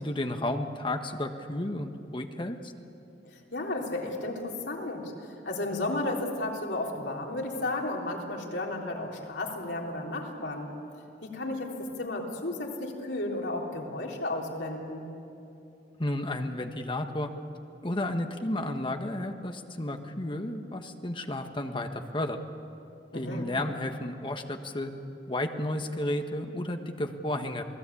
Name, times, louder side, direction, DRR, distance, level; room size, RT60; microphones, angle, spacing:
voice 1, 0.0-2.7 16.0-17.3 17.8-22.4 23.1-24.9 25.3-27.6, left 1 dB, 30° left, 6 dB, 1.4 m, -32 dB
voice 2, 3.2-10.7 11.2-15.1 23.1-23.5, left 2 dB, 85° left, -1 dB, 3.7 m, -33 dB
28.0 x 19.5 x 8.5 m, 2.8 s
head